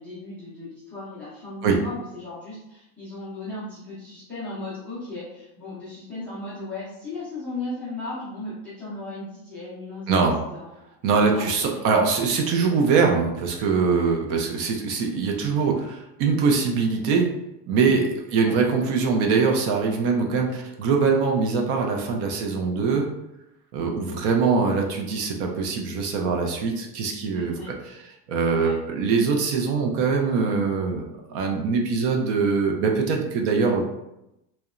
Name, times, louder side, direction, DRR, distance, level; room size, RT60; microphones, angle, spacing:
voice 1, 0.0-10.7 11.2-11.8 18.3-18.6 27.3-27.7 28.5-28.8, left 2 dB, 5° left, -12 dB, 0.3 m, -36 dB
voice 2, 10.1-10.4 11.0-17.3 17.7-23.1 23.7-27.6 28.3-31.0 31.3-33.9, right 5 dB, 55° right, 2 dB, 0.5 m, -23 dB
2.8 x 2.1 x 2.4 m, 0.88 s
cardioid pair, 180°, 41 cm